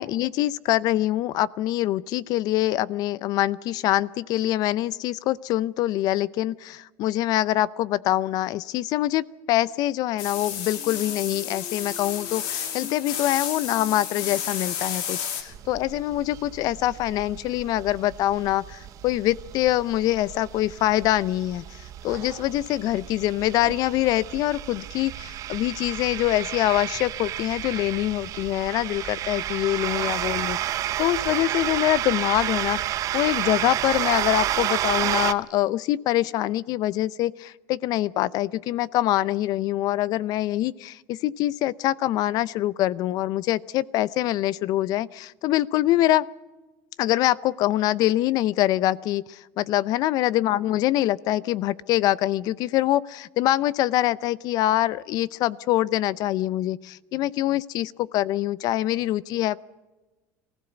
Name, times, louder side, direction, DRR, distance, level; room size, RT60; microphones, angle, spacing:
voice 1, 0.0-30.6 31.0-32.8 33.1-46.3 47.0-59.6, left 14 dB, 55° left, 21 dB, 0.6 m, -24 dB
sound 1, 10.2-15.4, left 8 dB, 75° left, 3.0 m, -31 dB
sound 2, 15.5-35.3, right 12 dB, 45° right, 0.8 m, -31 dB
23.5 x 15.5 x 8.1 m, 1.2 s
cardioid pair, 130°, 8 cm